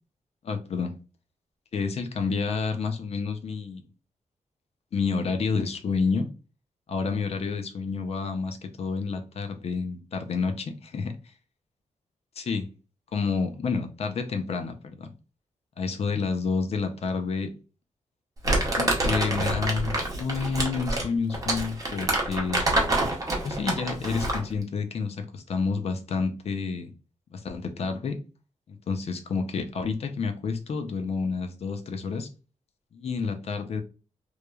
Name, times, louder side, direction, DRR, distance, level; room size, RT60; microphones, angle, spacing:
voice 1, 0.4-0.9 1.7-3.8 4.9-6.3 6.9-11.1 12.4-12.7 13.1-15.1 15.8-17.5 18.8-22.6 23.4-26.9 27.3-28.2 28.7-32.3 32.9-33.8, left 5 dB, 50° left, 0.5 m, -29 dB
Crumpling crinkling, 18.4-24.5, right 2 dB, 25° right, 0.6 m, -27 dB
3.0 x 2.1 x 2.3 m
wide cardioid pair, 160°, 13 cm